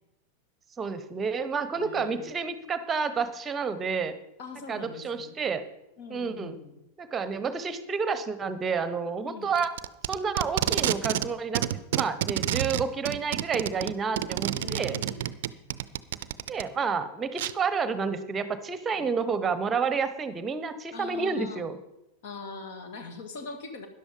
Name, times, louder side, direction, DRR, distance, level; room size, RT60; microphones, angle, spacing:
voice 1, 0.8-4.2 4.7-5.6 6.1-6.6 7.0-9.7 10.1-11.6 11.9-15.0 16.5-21.8, right 5 dB, 20° right, 13 dB, 1.0 m, -30 dB
voice 2, 1.7-2.3 4.4-5.4 6.0-6.7 9.2-9.5 14.6-15.3 19.0-19.1 20.9-21.6 22.2-23.9, left 4 dB, 50° left, 6 dB, 2.1 m, -42 dB
Packing tape duct tape, 9.6-11.3 11.6-16.6 17.4-17.5, right 12 dB, 55° right, 0.5 m, -29 dB
13.0 x 10.5 x 5.2 m, 0.89 s
figure-of-eight pair, 90°, 0 cm